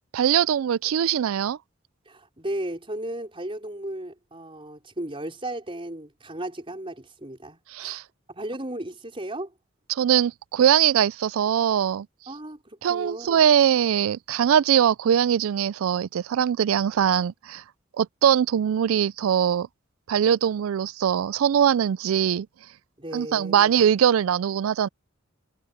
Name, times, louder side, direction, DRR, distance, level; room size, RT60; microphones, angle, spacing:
voice 1, 0.1-1.6 7.7-8.0 9.9-12.1 12.8-17.6 18.0-19.7 20.1-22.5 23.1-24.9, right 9 dB, 85° right, 0.3 m, -22 dB
voice 2, 2.1-8.0 8.3-9.5 12.3-13.5 23.0-23.7, right 1 dB, 25° right, 4.7 m, -35 dB
head